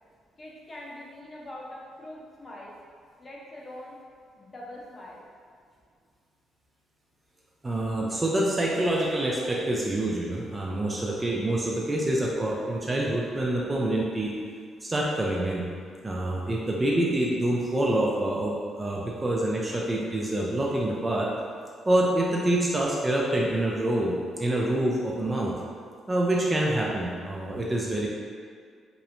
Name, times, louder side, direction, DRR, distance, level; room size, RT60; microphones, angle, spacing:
voice 1, 0.4-2.7 3.2-4.0 4.4-5.3, left 1 dB, 30° left, -4 dB, 0.6 m, -43 dB
voice 2, 7.6-14.4 14.8-15.6 16.0-21.3 21.9-25.5 26.1-28.1, right 1 dB, 20° right, -3 dB, 0.3 m, -26 dB
2.9 x 2.0 x 2.4 m, 2.1 s
cardioid pair, 90°, 0 cm